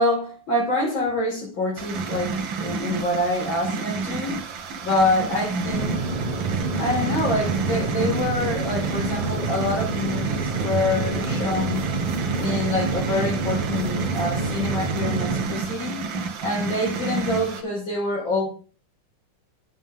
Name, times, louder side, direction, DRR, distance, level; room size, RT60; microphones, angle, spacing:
voice 1, 0.0-4.4 4.8-6.1 6.8-11.8 12.4-16.0 16.4-18.5, left 2 dB, 75° left, 5.3 m, -26 dB
sound 1, 1.8-17.6, right 4 dB, 75° right, 1.9 m, -30 dB
sound 2, 5.7-15.5, right 3 dB, 30° right, 0.8 m, -27 dB
9.3 x 8.0 x 3.7 m
omnidirectional pair, 2.1 m